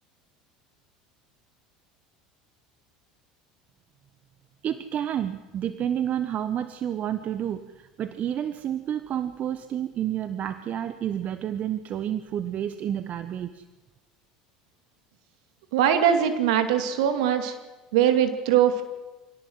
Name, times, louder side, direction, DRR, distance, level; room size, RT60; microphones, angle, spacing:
voice 1, 4.6-13.6, right 10 dB, 45° right, 11 dB, 1.2 m, -30 dB
voice 2, 15.7-17.5 17.9-18.8, right 9 dB, 75° right, 7 dB, 2.5 m, -21 dB
26.0 x 17.5 x 8.0 m, 1.1 s
hypercardioid pair, 80°, 4 cm